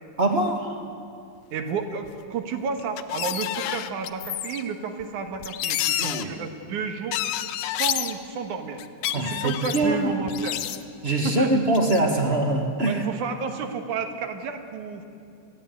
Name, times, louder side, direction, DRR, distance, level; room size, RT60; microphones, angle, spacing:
voice 1, 0.2-0.8 6.0-6.3 9.1-10.1 11.0-13.0, right 2 dB, 30° right, 2 dB, 1.3 m, -23 dB
voice 2, 1.5-7.2 7.6-8.8 9.1-10.6 11.2-11.6 12.8-15.0, right 6 dB, 85° right, 6 dB, 2.9 m, -31 dB
sound 1, 2.1-2.2 2.8-4.6 5.0-5.1 5.3-6.2 7.1-8.1 8.8-9.9 10.3-11.1 11.8-12.0, left 12 dB, 75° left, 1.8 m, -29 dB
22.0 x 15.5 x 9.3 m, 2.5 s
omnidirectional pair, 3.4 m